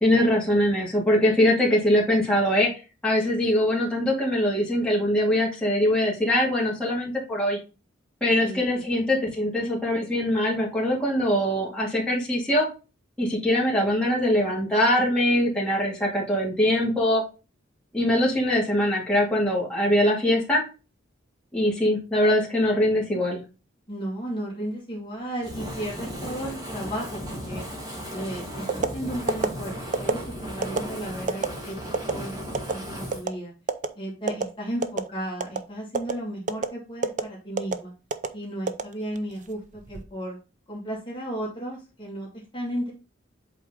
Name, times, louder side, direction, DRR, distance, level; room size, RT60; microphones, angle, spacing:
voice 1, 0.0-2.7 3.0-7.6 8.2-12.7 13.2-17.2 17.9-20.6 21.5-23.4, left 1 dB, 5° left, -5 dB, 2.4 m, -22 dB
voice 2, 23.9-27.6 28.1-32.4 32.7-33.5 34.0-37.9 38.3-40.4 40.7-42.9, right 1 dB, 25° left, -4 dB, 2.1 m, -34 dB
Fire, 25.4-33.2, equal, 20° right, 1.7 m, -36 dB
sound 1, 28.7-28.9 29.3-29.5 29.9-30.2 30.6-30.8 31.3-31.5 31.9-32.1 32.5-32.7 33.1-33.3 33.7-33.9 34.3-34.4 34.8-35.1 35.4-35.6 35.9-36.1 36.5-36.7 37.0-37.2 37.6-37.8 38.1-38.3 38.7-39.3 39.7-40.0, right 4 dB, 40° right, 0.5 m, -25 dB
8.0 x 3.8 x 3.8 m, 0.31 s
head